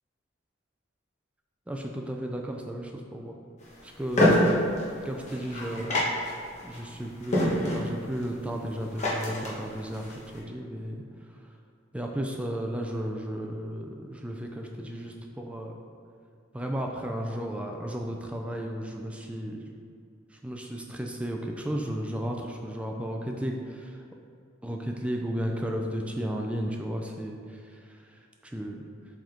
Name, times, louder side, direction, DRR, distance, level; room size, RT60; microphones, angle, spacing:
voice 1, 1.7-3.4 3.8-4.7 5.0-6.0 6.6-11.0 11.9-15.8 16.5-19.6 20.3-24.0 24.6-28.8, equal, 5° right, 1 dB, 0.3 m, -34 dB
sound 1, 3.6-10.4, left 1 dB, 35° left, 1.2 m, -28 dB
7.5 x 3.6 x 3.7 m, 2.4 s
head